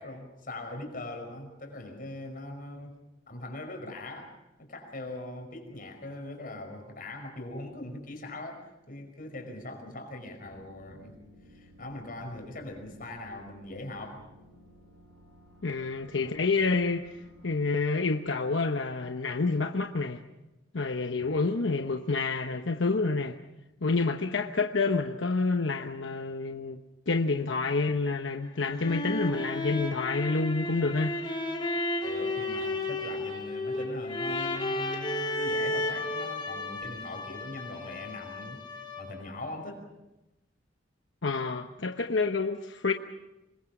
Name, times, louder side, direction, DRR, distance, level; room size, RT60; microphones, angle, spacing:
voice 1, 0.0-3.0 3.3-4.3 4.6-11.1 11.5-14.2 21.2-21.5 32.0-39.8, left 1 dB, 50° left, 4 dB, 5.4 m, -41 dB
sound 1, 10.4-17.7, equal, 80° right, 5.4 m, -56 dB
voice 2, 15.6-17.1 17.4-20.2 20.7-23.3 23.8-26.8 27.1-31.1 41.2-42.9, left 3 dB, 90° left, 6 dB, 1.0 m, -28 dB
sound 2, 28.5-39.3, left 2 dB, 25° left, 3.1 m, -33 dB
26.5 x 21.0 x 6.1 m, 0.98 s
head